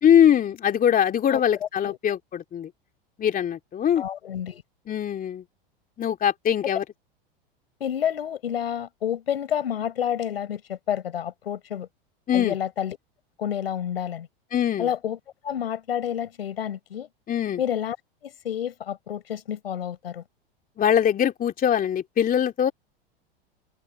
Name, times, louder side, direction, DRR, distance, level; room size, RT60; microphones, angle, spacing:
voice 1, 0.0-2.7 3.2-4.0 4.9-5.4 6.0-6.8 12.3-12.5 14.5-14.9 17.3-17.6 20.8-22.7, left 9 dB, 30° left, 2.8 m, -22 dB
voice 2, 4.0-4.6 7.8-11.9 12.3-13.0 13.4-14.3 14.8-15.2 15.4-17.1 17.6-18.0 18.2-20.2, left 9 dB, 85° left, 6.2 m, -29 dB
open air
hypercardioid pair, 100°, 29 cm